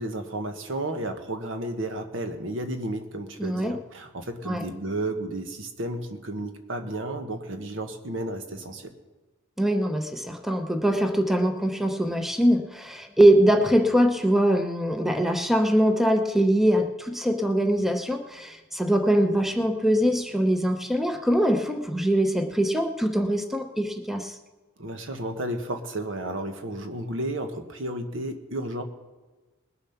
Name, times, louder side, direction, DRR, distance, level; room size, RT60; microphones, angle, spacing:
voice 1, 0.0-8.9 24.8-28.8, right 1 dB, 70° right, 6 dB, 1.4 m, -32 dB
voice 2, 3.4-3.8 4.5-4.6 9.6-24.4, right 1 dB, ahead, 6 dB, 0.7 m, -22 dB
20.5 x 7.1 x 5.8 m, 1.2 s
head